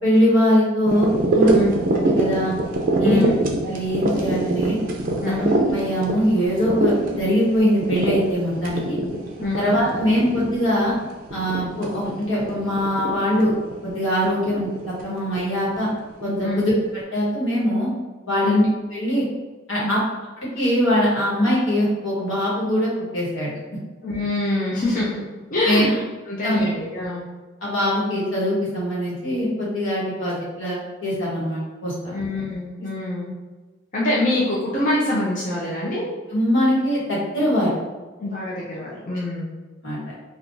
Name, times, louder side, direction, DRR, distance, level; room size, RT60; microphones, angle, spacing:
voice 1, 0.0-1.5 2.0-2.5 3.0-3.3 3.6-4.8 5.4-9.0 9.5-10.9 11.3-13.5 13.8-15.9 16.2-16.7 17.1-17.9 18.3-18.7 18.9-19.2 19.7-20.0 20.5-23.5 25.7-25.8 26.4-26.7 27.6-32.1 36.3-37.7 39.8-40.0, equal, 80° left, -6 dB, 1.3 m, -22 dB
sound 1, 0.9-16.5 17.0-17.1, right 2 dB, 45° right, 0.4 m, -25 dB
voice 2, 3.0-3.3 5.2-5.4 9.4-9.6 16.4-16.6 18.4-18.6 19.8-19.9 24.0-25.2 25.5-27.2 32.1-33.3 33.9-36.0 38.2-39.5, left 2 dB, 45° left, -6 dB, 0.6 m, -25 dB
2.5 x 2.4 x 3.7 m, 1.3 s
head